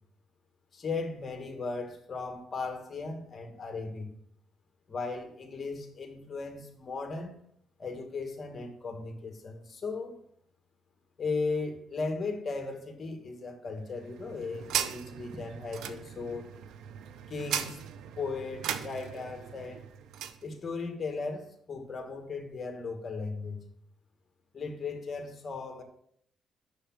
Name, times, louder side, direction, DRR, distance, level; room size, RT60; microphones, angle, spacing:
voice 1, 0.7-4.1 4.9-7.3 7.8-10.2 11.2-16.5 17.3-17.8 18.2-19.8 20.4-23.6 24.5-25.8, left 4 dB, 40° left, 1.6 m, -36 dB
sound 1, 13.8-20.4, right 9 dB, 85° right, 0.5 m, -38 dB
6.5 x 5.7 x 6.0 m
cardioid pair, 90°, 0 cm